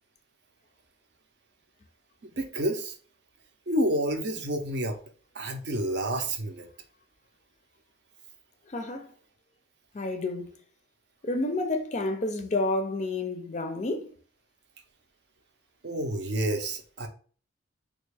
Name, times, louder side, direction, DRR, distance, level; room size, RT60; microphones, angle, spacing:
voice 1, 2.2-3.0 3.7-5.0 5.3-6.7 15.8-17.1, right 1 dB, 60° right, 0.6 m, -29 dB
voice 2, 8.7-9.1 9.9-10.5 11.2-14.1, left 2 dB, 35° left, 0.4 m, -30 dB
3.4 x 2.4 x 3.3 m
head